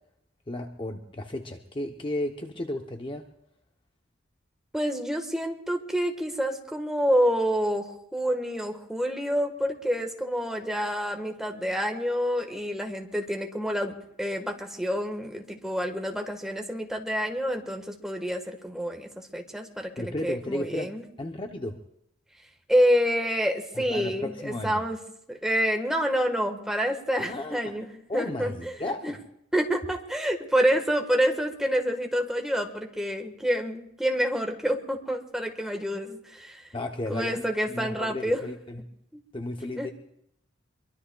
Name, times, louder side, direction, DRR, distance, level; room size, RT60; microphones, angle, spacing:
voice 1, 0.5-3.3 20.0-21.8 23.7-24.9 27.2-27.7 28.1-29.2 36.7-37.4 37.7-38.8 39.3-39.9, left 1 dB, 25° left, 4 dB, 0.7 m, -34 dB
voice 2, 4.7-21.0 22.7-25.0 25.3-29.1 29.5-36.7 37.1-38.4 39.1-39.2 39.8-39.9, equal, 5° right, 4 dB, 1.3 m, -28 dB
23.5 x 23.0 x 2.3 m, 0.75 s
head